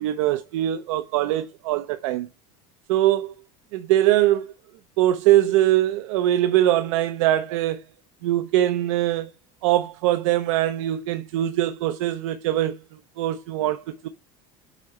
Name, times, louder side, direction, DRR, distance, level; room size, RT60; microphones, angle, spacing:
voice 1, 0.0-2.3 2.9-3.3 3.7-4.5 5.0-7.8 8.2-9.3 9.6-12.7 13.2-14.1, right 13 dB, 85° right, 0.9 m, -22 dB
8.3 x 4.8 x 4.2 m
cardioid pair, 175°, 16 cm